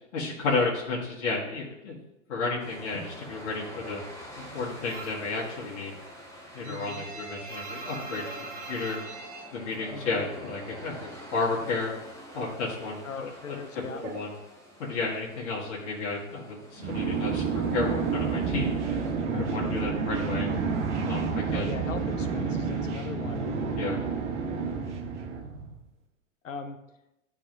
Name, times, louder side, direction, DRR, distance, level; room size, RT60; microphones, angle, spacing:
voice 1, 0.1-1.9 2.3-4.0 4.4-5.9 6.5-9.0 9.5-11.9 12.3-13.0 13.5-13.6 14.0-14.3 14.8-18.7 19.3-20.5 21.0-21.7 21.9-22.1 23.8-24.0 25.2-25.3, left 3 dB, 60° left, -4 dB, 1.9 m, -32 dB
sound 1, 2.6-19.1, equal, 5° left, 1.3 m, -47 dB
sound 2, 4.9-5.3 5.7-10.5 10.8-11.9 12.1-15.0, right 3 dB, 50° right, 1.7 m, -42 dB
voice 2, 6.6-7.0 9.9-10.3 13.0-14.0 19.5-20.0 21.5-23.5 26.4-26.8, left 5 dB, 75° left, 8 dB, 0.8 m, -39 dB
sound 3, 16.8-25.8, right 5 dB, 65° right, 1.3 m, -29 dB
11.5 x 4.1 x 2.6 m, 0.91 s
figure-of-eight pair, 100°, 38 cm